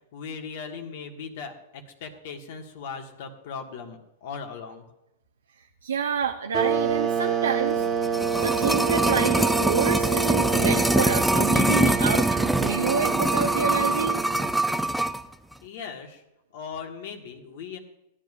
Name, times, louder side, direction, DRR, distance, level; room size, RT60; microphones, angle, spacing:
voice 1, 0.1-4.8 15.6-16.2 16.5-17.8, left 6 dB, 60° left, 4 dB, 1.6 m, -38 dB
voice 2, 5.8-7.8 8.4-14.2, right 6 dB, 85° right, 5 dB, 0.6 m, -28 dB
sound 1, 6.5-14.9, right 7 dB, 30° right, 1.1 m, -28 dB
sound 2, 7.8-15.2 15.5-15.6, right 1 dB, ahead, 0.4 m, -24 dB
16.5 x 10.0 x 2.4 m, 0.86 s
hypercardioid pair, 115°, 0 cm